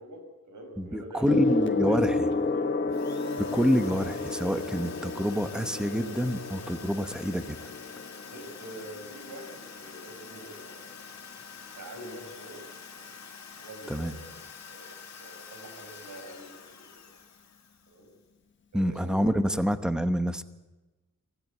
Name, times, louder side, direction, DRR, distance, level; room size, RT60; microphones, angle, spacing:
voice 1, 0.0-1.5 1.9-2.7 8.3-11.0 11.7-12.6 12.9-13.1 13.6-14.4 14.6-14.9 15.2-17.0 17.9-18.1 18.7-19.4, right 1 dB, 80° right, 3 dB, 6.1 m, -45 dB
voice 2, 0.8-2.3 3.4-7.6 13.9-14.1 18.7-20.4, equal, 5° right, 10 dB, 1.0 m, -27 dB
Gong, 1.3-11.0 12.0-12.2, left 3 dB, 40° left, 1.3 m, -32 dB
Drill, 2.9-18.1, left 6 dB, 65° left, 2.1 m, -47 dB
25.5 x 16.5 x 8.4 m, 1.1 s
wide cardioid pair, 170°, 30 cm